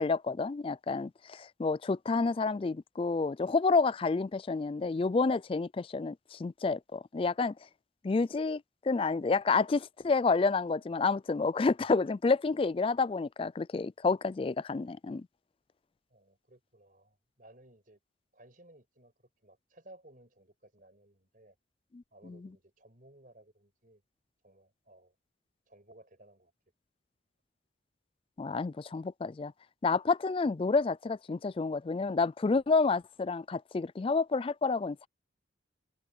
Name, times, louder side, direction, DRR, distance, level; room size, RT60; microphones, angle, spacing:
voice 1, 0.0-7.5 8.0-15.3 21.9-22.4 28.4-29.5 29.8-35.1, left 4 dB, 30° left, 0.3 m, -29 dB
voice 2, 16.1-18.0 18.3-19.1 19.4-21.6 22.1-24.0 24.4-25.2 25.7-26.5, right 1 dB, 45° right, 5.3 m, -58 dB
head